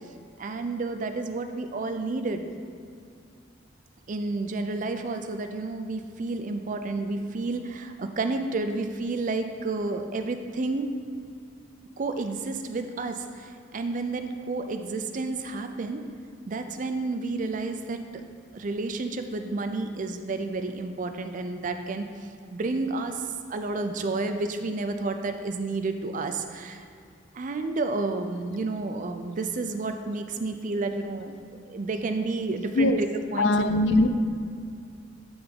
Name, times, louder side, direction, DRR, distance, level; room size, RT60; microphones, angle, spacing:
voice 1, 0.4-2.5 4.1-10.9 12.0-16.0 16.5-18.0 18.5-26.8 27.3-31.3 31.6-33.1 33.3-33.7, right 3 dB, 40° right, 7 dB, 0.4 m, -30 dB
voice 2, 33.4-34.1, left 2 dB, 65° left, 8 dB, 0.4 m, -21 dB
8.8 x 3.5 x 5.1 m, 2.3 s
head